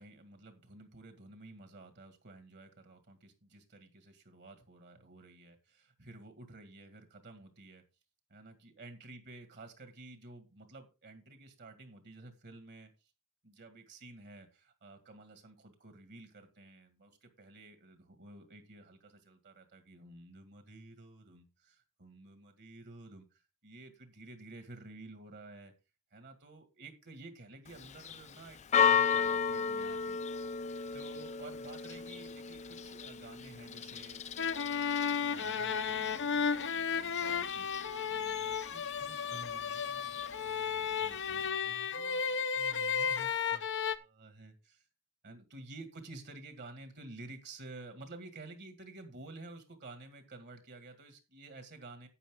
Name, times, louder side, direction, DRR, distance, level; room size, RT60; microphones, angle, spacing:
voice 1, 0.0-7.8 8.3-13.1 13.4-25.7 26.1-30.2 30.9-34.5 35.2-44.9 45.2-52.1, right 2 dB, 55° right, 2.0 m, -52 dB
Church bell, 27.7-41.5, left 7 dB, 35° left, 0.5 m, -36 dB
sound 1, 34.4-44.0, left 6 dB, 60° left, 0.8 m, -33 dB
11.0 x 8.7 x 3.7 m
head